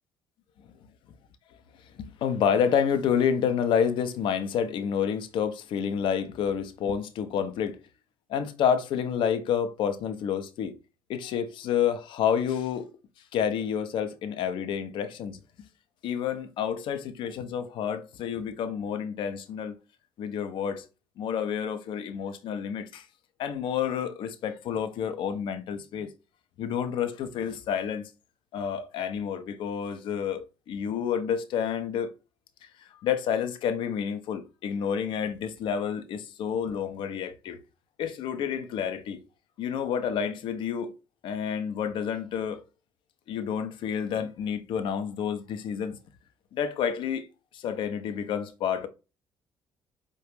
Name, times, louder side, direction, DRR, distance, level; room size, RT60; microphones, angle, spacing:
voice 1, 2.0-7.8 8.3-10.8 11.1-12.9 13.3-15.4 16.0-19.8 20.2-20.8 21.2-23.1 23.4-26.1 26.6-28.1 28.5-32.1 32.6-37.6 38.0-39.2 39.6-40.9 41.2-42.6 43.3-46.0 46.5-47.3 47.5-48.9, left 8 dB, 50° left, 0.5 m, -29 dB
4.8 x 2.2 x 3.1 m
figure-of-eight pair, 50°, 11 cm